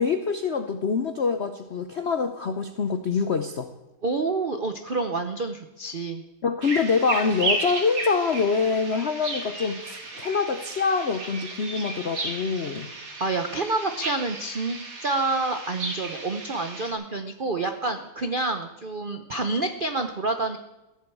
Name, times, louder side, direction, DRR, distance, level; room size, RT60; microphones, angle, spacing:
voice 1, 0.0-3.7 6.4-12.9, left 5 dB, 70° left, 8 dB, 0.6 m, -25 dB
voice 2, 4.0-6.2 13.2-20.6, right 3 dB, 75° right, 7 dB, 0.4 m, -28 dB
sound 1, 6.6-16.9, right 3 dB, 45° right, 2.4 m, -34 dB
15.0 x 7.9 x 8.5 m, 1.0 s
omnidirectional pair, 2.2 m